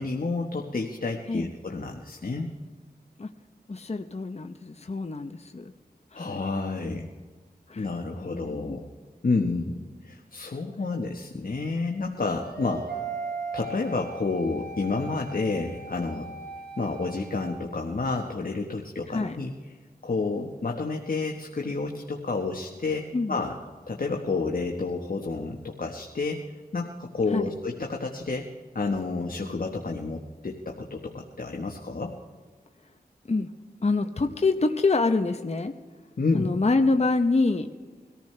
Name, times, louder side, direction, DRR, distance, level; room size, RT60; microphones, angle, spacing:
voice 1, 0.0-2.5 6.1-7.0 7.8-8.8 9.2-13.0 13.5-16.3 16.8-19.5 20.0-23.5 23.9-26.4 26.7-28.5 28.7-32.1 36.2-36.6, left 3 dB, 60° left, 2 dB, 1.3 m, -30 dB
voice 2, 3.7-5.7 6.1-6.4 6.8-7.1 7.7-7.9 8.2-8.8 19.1-19.4 23.1-23.4 27.3-27.5 33.3-33.5 33.8-35.7 36.3-37.7, left 3 dB, 40° left, 6 dB, 0.8 m, -26 dB
sound 1, 12.4-17.5, right 4 dB, 75° right, 3.6 m, -38 dB
23.0 x 14.5 x 3.4 m, 1.4 s
wide cardioid pair, 55°, 17 cm